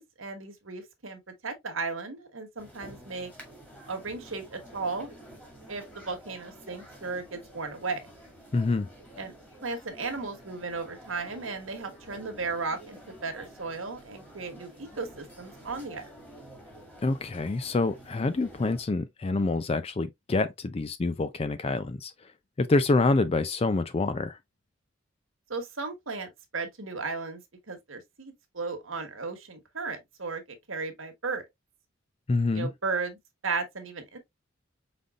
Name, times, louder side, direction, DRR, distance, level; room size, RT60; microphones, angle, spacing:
voice 1, 0.0-3.3 3.9-5.1 5.7-8.0 9.2-9.3 9.6-16.1 25.5-27.4 27.7-31.4 32.5-34.2, right 4 dB, 75° right, 1.3 m, -35 dB
sound 1, 2.6-18.8, right 1 dB, 10° left, 1.8 m, -50 dB
voice 2, 8.5-8.9 17.0-22.1 22.6-24.4 32.3-32.7, left 3 dB, 30° left, 0.4 m, -26 dB
5.3 x 3.9 x 2.3 m
head